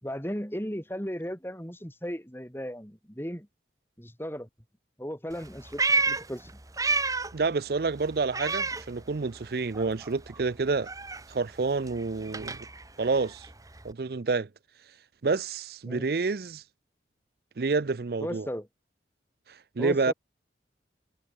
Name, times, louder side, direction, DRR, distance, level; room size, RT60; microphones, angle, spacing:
voice 1, 0.0-3.5 4.0-4.5 5.0-6.5 15.9-16.1 18.2-18.7 19.8-20.1, equal, 15° left, 5.4 m, -36 dB
Meow, 5.3-7.5 7.8-9.5 9.7-13.9, right 3 dB, 20° right, 1.7 m, -31 dB
voice 2, 7.3-10.9 11.3-12.6 13.0-13.5 13.8-14.5 15.2-16.6 17.6-18.5 19.5-20.1, right 4 dB, 55° right, 0.5 m, -28 dB
head